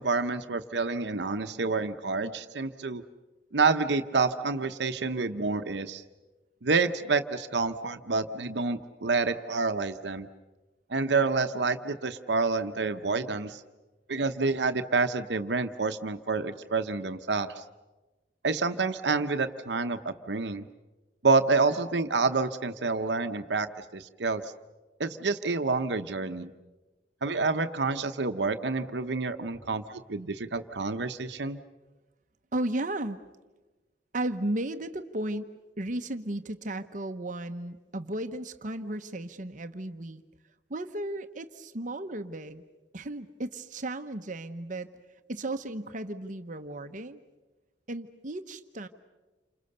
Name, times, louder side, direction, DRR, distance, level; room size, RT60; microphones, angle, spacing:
voice 1, 0.0-3.0 3.5-6.0 6.6-10.3 10.9-13.6 14.1-17.6 18.4-20.6 21.2-23.7 23.9-24.4 25.0-26.5 27.2-31.6, right 4 dB, 80° right, 8 dB, 0.9 m, -28 dB
voice 2, 32.5-33.2 34.1-35.5 35.8-40.2 40.7-42.6 42.9-44.9 45.3-47.2 47.9-48.9, right 1 dB, 45° right, 8 dB, 1.0 m, -34 dB
29.0 x 26.5 x 6.7 m, 1.2 s
head